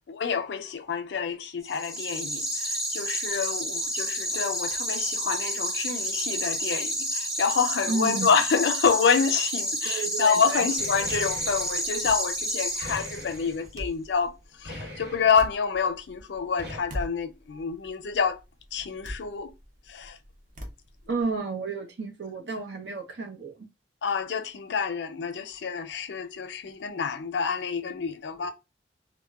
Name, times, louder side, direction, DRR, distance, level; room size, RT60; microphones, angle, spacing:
voice 1, 0.1-14.3 14.6-18.4 18.7-19.5 19.9-20.2 24.0-28.5, left 6 dB, 80° left, 0.5 m, -27 dB
sound 1, 1.7-13.5, equal, 5° right, 0.9 m, -30 dB
voice 2, 7.9-8.3 9.8-10.7 21.1-23.7, right 4 dB, 85° right, 0.7 m, -32 dB
sound 2, 10.8-11.8 12.8-13.7 14.6-15.5 16.6-16.8, left 1 dB, 65° right, 1.6 m, -40 dB
sound 3, 11.2-21.4, equal, 45° right, 0.6 m, -44 dB
2.9 x 2.1 x 2.3 m
head